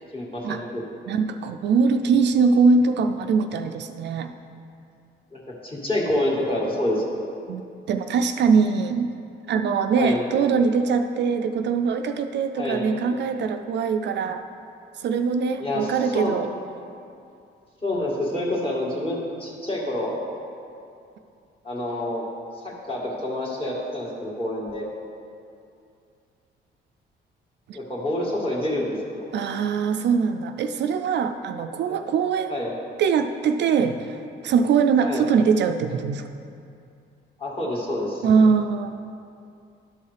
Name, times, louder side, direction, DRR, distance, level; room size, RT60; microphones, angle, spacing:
voice 1, 0.1-0.8 5.3-7.2 9.9-10.2 12.6-12.9 15.6-16.3 17.8-20.2 21.6-22.3 22.6-24.9 27.7-29.3 31.9-32.0 32.5-32.7 35.0-35.3 37.4-38.2, left 1 dB, 25° left, -4 dB, 2.0 m, -27 dB
voice 2, 1.1-4.3 7.5-9.1 9.5-14.4 15.0-16.5 27.7-27.8 29.3-32.6 33.0-34.2 34.4-36.2 38.2-38.9, right 5 dB, 60° right, 7 dB, 0.4 m, -22 dB
11.5 x 5.4 x 3.3 m, 2.5 s
cardioid pair, 90°, 20 cm